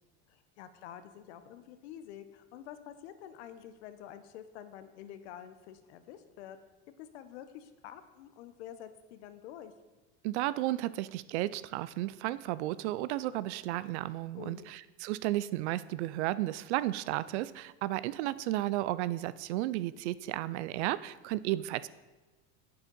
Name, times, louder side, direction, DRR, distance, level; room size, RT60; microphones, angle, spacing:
voice 1, 0.3-6.6 7.0-9.7 14.4-14.7, left 10 dB, 85° left, 10 dB, 1.0 m, -48 dB
voice 2, 10.2-21.9, right 16 dB, 85° right, 17 dB, 0.5 m, -33 dB
8.4 x 7.9 x 5.4 m, 1.2 s
supercardioid pair, 130°, 33 cm